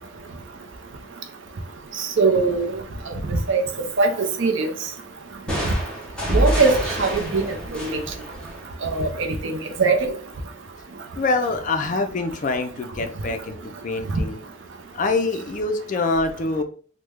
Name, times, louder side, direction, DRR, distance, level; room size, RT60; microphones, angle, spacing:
voice 1, 2.0-2.8 3.1-3.6 4.0-4.7 6.3-7.4 7.7-8.0 8.8-10.1, right 3 dB, 65° right, 0.5 m, -21 dB
sound 1, 5.5-9.1, equal, 5° left, 0.8 m, -27 dB
voice 2, 11.2-13.6 13.8-14.4 14.9-16.6, left 3 dB, 35° left, 0.4 m, -25 dB
3.1 x 2.1 x 3.4 m
head